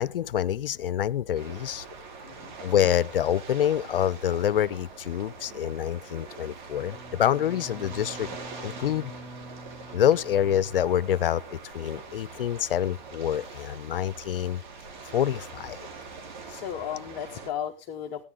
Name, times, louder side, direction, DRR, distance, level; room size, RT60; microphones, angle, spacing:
voice 1, 0.0-1.9 2.6-9.1 9.9-14.6 15.0-15.9, left 10 dB, 70° left, 0.6 m, -26 dB
sound 1, 1.3-17.5, right 4 dB, 50° right, 3.7 m, -44 dB
voice 2, 2.2-2.6 16.5-18.2, left 9 dB, 25° left, 1.0 m, -35 dB
Bowed string instrument, 6.7-11.5, right 1 dB, 30° right, 5.9 m, -46 dB
15.5 x 10.5 x 3.6 m
hypercardioid pair, 150°, 29 cm